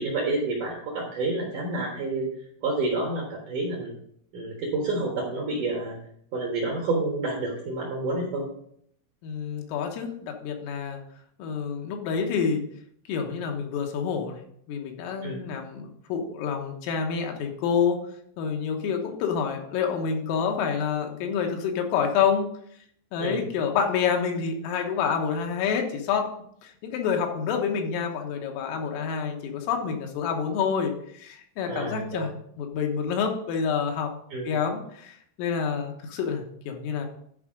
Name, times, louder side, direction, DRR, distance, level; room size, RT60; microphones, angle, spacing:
voice 1, 0.0-2.3 2.6-3.9 4.3-6.0 6.3-8.5 15.2-15.4 23.2-23.4 31.7-32.3 34.3-34.5, right 2 dB, 65° right, -2 dB, 2.0 m, -29 dB
voice 2, 9.2-11.0 11.4-12.7 13.1-14.4 14.7-18.0 18.4-22.5 23.1-26.3 26.6-32.3 32.6-34.1 34.5-37.1, left 6 dB, 80° left, 3 dB, 3.7 m, -28 dB
11.0 x 4.9 x 4.9 m, 0.67 s
omnidirectional pair, 5.9 m